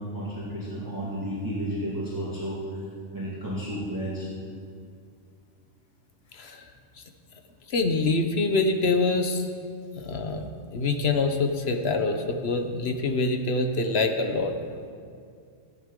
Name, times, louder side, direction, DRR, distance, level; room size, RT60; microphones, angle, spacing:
voice 1, 0.0-2.6 3.1-4.3, equal, 15° right, -8 dB, 2.1 m, -32 dB
voice 2, 7.7-9.5 10.0-10.4 10.7-14.5, left 3 dB, 60° left, 5 dB, 1.2 m, -25 dB
16.0 x 9.6 x 3.8 m, 2.3 s
omnidirectional pair, 1.3 m